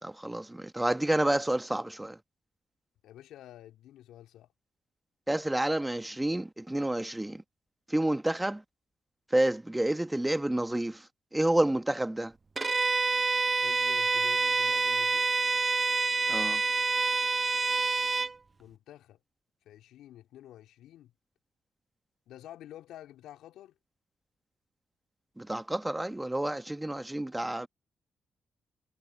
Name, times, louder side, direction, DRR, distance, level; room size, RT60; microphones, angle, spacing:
voice 1, 0.0-2.2 5.3-7.4 7.9-8.6 9.3-11.1 11.3-12.3 16.3-16.6 25.4-27.7, right 1 dB, 15° right, 1.5 m, -29 dB
voice 2, 3.0-4.5 13.6-15.3 18.6-19.2 19.6-21.1 22.3-23.7, left 12 dB, 75° left, 2.6 m, -50 dB
Bowed string instrument, 12.6-18.3, right 4 dB, 35° right, 0.5 m, -27 dB
hypercardioid pair, 40°, 0 cm